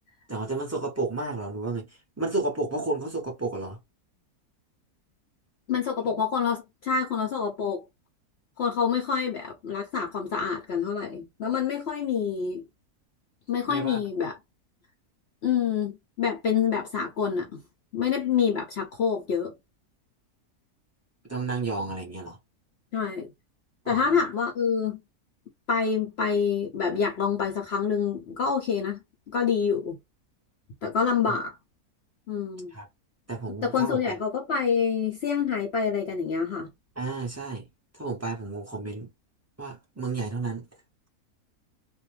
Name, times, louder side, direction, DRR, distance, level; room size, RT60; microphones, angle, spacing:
voice 1, 0.3-3.8 6.0-6.3 13.7-14.0 21.3-22.4 23.8-24.2 31.3-31.4 32.7-32.9 33.3-34.2 37.0-37.7 37.9-39.1 39.6-40.6, right 3 dB, 20° right, 0.4 m, -32 dB
voice 2, 5.7-7.8 8.6-12.6 13.5-14.3 15.4-17.6 17.9-19.5 22.9-23.3 23.9-25.0 25.7-29.0 29.3-30.0 30.8-31.6 32.3-32.7 33.6-36.7, left 6 dB, 60° left, 0.7 m, -27 dB
2.5 x 2.1 x 3.1 m
omnidirectional pair, 1.6 m